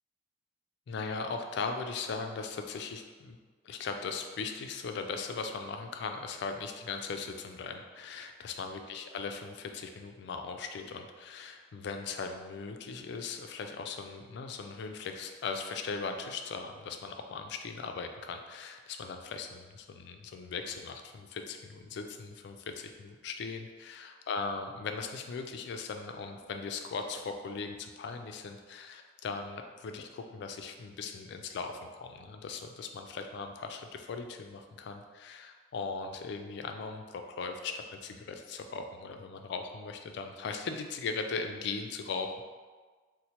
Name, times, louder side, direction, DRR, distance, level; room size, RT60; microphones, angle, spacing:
voice 1, 0.9-3.4 3.6-23.7 24.3-42.4, left 4 dB, 60° left, 5 dB, 0.3 m, -39 dB
4.2 x 2.1 x 2.8 m, 1.4 s
head